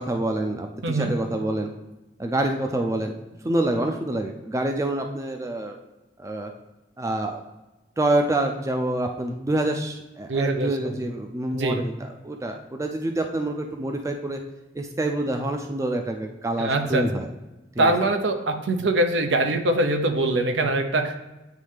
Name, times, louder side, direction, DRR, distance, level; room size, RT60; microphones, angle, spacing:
voice 1, 0.0-1.7 2.2-3.1 3.4-5.8 6.2-6.5 7.0-7.4 8.0-14.4 14.8-17.3 17.7-17.9, right 1 dB, 15° right, 4 dB, 0.3 m, -27 dB
voice 2, 10.3-11.0 11.5-11.8 16.6-17.0 17.8-21.3, right 2 dB, 85° right, 7 dB, 0.7 m, -23 dB
9.2 x 3.2 x 3.4 m, 1.1 s
head